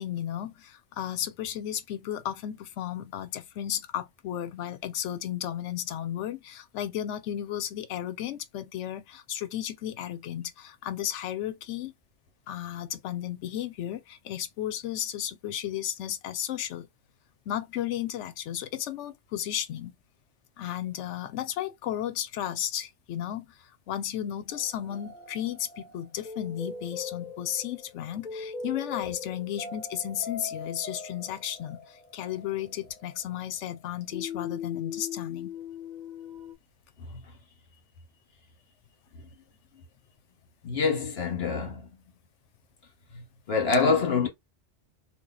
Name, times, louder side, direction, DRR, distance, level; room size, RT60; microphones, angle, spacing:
voice 1, 0.0-11.9 12.5-16.9 17.5-19.9 20.6-23.5 23.9-35.5, left 11 dB, 90° left, 0.9 m, -34 dB
sound 1, 24.5-36.5, left 6 dB, 40° left, 1.0 m, -40 dB
voice 2, 37.0-37.3 40.6-41.9 43.1-44.3, left 4 dB, 60° left, 1.3 m, -26 dB
2.9 x 2.3 x 3.8 m
omnidirectional pair, 1.2 m